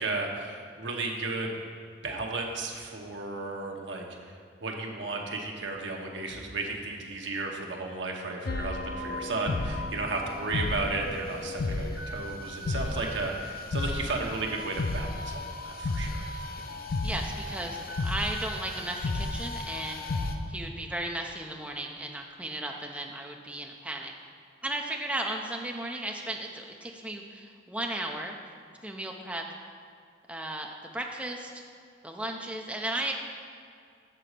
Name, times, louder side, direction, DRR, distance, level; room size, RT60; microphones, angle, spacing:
voice 1, 0.0-1.6 2.0-16.3, right 3 dB, 70° right, 1 dB, 1.0 m, -34 dB
sound 1, 8.4-20.3, left 2 dB, 50° left, 0.5 m, -33 dB
voice 2, 17.0-24.1 24.6-28.4 28.8-29.4 30.3-31.6 32.0-33.1, right 1 dB, 5° right, 1 dB, 0.5 m, -35 dB
7.6 x 4.0 x 6.6 m, 2.3 s
head